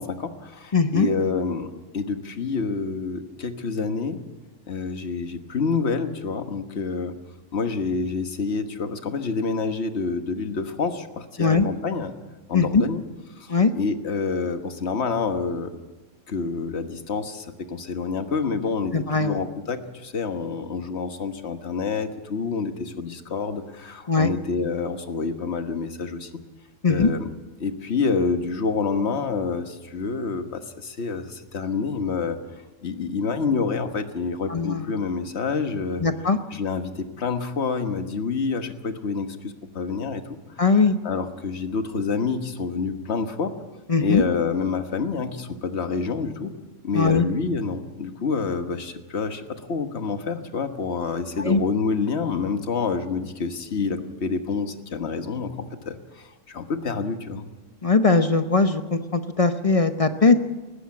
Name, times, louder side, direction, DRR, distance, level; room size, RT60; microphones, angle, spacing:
voice 1, 0.0-4.2 4.7-7.1 7.5-12.1 12.5-13.0 13.4-15.7 16.3-26.3 26.9-27.3 27.6-32.4 32.8-36.0 36.5-40.2 40.7-40.8 41.0-43.6 44.0-46.5 46.8-57.4, left 5 dB, 55° left, 8 dB, 1.6 m, -28 dB
voice 2, 0.7-1.1 11.4-11.7 12.5-12.8 13.5-13.7 18.9-19.4 24.1-24.3 26.8-27.1 34.5-34.9 36.0-36.4 40.6-41.0 43.9-44.2 46.9-47.3 51.4-51.6 57.8-60.3, left 4 dB, 30° left, 9 dB, 0.8 m, -20 dB
20.5 x 15.0 x 8.6 m, 1.2 s
omnidirectional pair, 1.3 m